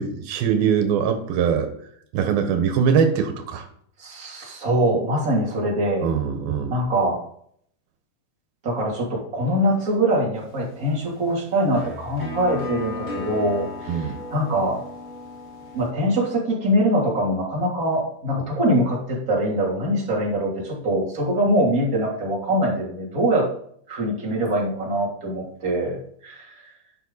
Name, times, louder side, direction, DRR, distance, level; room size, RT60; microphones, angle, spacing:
voice 1, 0.0-1.7 2.1-3.6 6.0-6.8 13.9-14.2, right 7 dB, 90° right, 6 dB, 3.1 m, -22 dB
voice 2, 4.0-6.1 6.7-7.2 8.6-14.8 15.7-23.5 23.9-26.7, right 1 dB, 25° right, -3 dB, 3.1 m, -23 dB
sound 1, 10.3-15.9, left 2 dB, 20° left, 2.0 m, -36 dB
11.5 x 8.0 x 4.1 m, 0.64 s
omnidirectional pair, 4.1 m